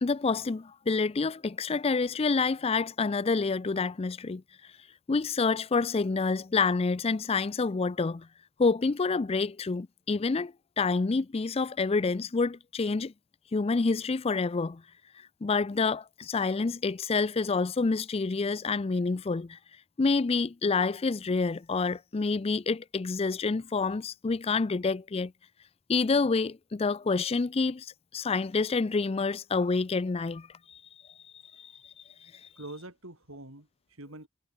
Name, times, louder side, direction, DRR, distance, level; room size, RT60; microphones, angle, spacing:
voice 1, 0.0-4.4 5.1-8.3 8.6-13.1 13.5-14.8 15.1-19.6 20.0-25.3 25.9-30.8 31.5-31.9 32.2-32.5, left 4 dB, 25° left, 0.4 m, -28 dB
voice 2, 32.6-34.3, right 1 dB, 65° right, 4.6 m, -45 dB
head